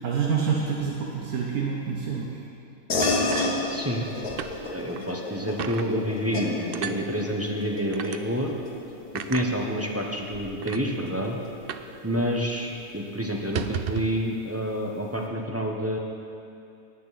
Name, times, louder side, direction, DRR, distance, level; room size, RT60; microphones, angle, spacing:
voice 1, 0.0-2.3 3.5-3.6 4.6-4.8, right 6 dB, 85° right, -2 dB, 1.6 m, -27 dB
sound 1, 2.9-12.8, left 2 dB, 90° left, 1.9 m, -32 dB
sound 2, 3.0-4.1 4.4-4.5 4.9-5.1 5.6-5.9 6.7-7.0 7.9-8.2 9.1-9.5 10.2-10.3 10.6-10.8 11.7-11.9 12.2-12.3 12.6-12.8 13.4-14.2, right 8 dB, 70° right, 0.5 m, -33 dB
voice 2, 3.7-4.0 4.7-8.5 9.3-11.4 12.0-16.0, equal, 10° right, -1 dB, 0.9 m, -28 dB
19.0 x 9.3 x 4.1 m, 2.6 s
omnidirectional pair, 1.5 m